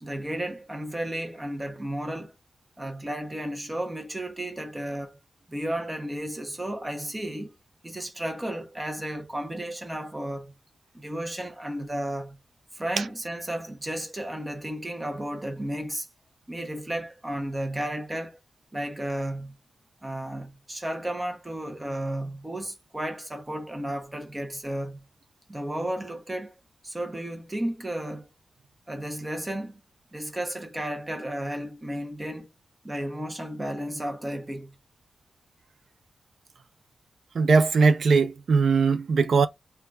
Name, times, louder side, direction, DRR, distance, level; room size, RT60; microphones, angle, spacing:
voice 1, 0.0-2.3 2.8-5.2 5.5-7.5 7.8-10.5 10.9-12.4 12.7-16.1 16.5-18.4 18.7-19.6 20.0-25.1 25.5-26.5 26.8-28.3 28.9-29.8 30.1-32.5 32.8-34.8, right 1 dB, 15° right, 0.6 m, -33 dB
voice 2, 37.3-39.5, right 4 dB, 55° right, 0.4 m, -20 dB
2.2 x 2.2 x 3.7 m
wide cardioid pair, 165°, 0 cm